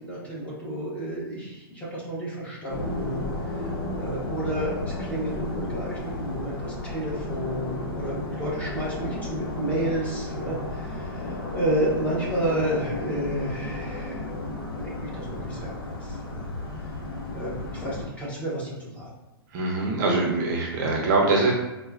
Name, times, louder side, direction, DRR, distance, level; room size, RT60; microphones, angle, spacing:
voice 1, 0.0-16.5 17.3-19.1, right 1 dB, 10° left, -7 dB, 1.1 m, -31 dB
sound 1, 2.7-18.1, left 2 dB, 60° left, 1.0 m, -33 dB
voice 2, 19.5-21.5, right 3 dB, 45° right, -1 dB, 0.7 m, -23 dB
4.1 x 2.2 x 2.4 m, 1.0 s
hypercardioid pair, 135°, 13 cm